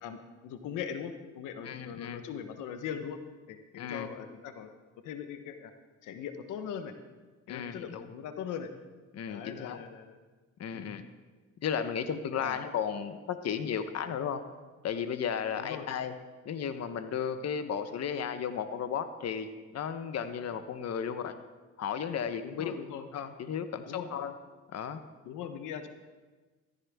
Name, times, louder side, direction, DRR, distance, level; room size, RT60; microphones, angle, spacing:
voice 1, 0.0-3.2 3.5-4.7 5.0-5.7 6.0-6.9 7.5-8.7 9.3-10.2 10.7-10.9 12.4-12.6 15.5-15.9 22.4-23.1 23.9-24.1 25.2-25.9, left 8 dB, 90° left, 8 dB, 1.0 m, -40 dB
voice 2, 1.6-2.2 3.8-4.1 7.5-8.0 9.1-9.8 10.6-11.0 11.6-14.4 14.8-16.1 16.4-21.3 21.8-22.8 23.1-24.3 24.7-25.0, left 7 dB, 55° left, 9 dB, 1.0 m, -34 dB
14.5 x 14.0 x 3.5 m, 1.3 s
cardioid pair, 90°, 30 cm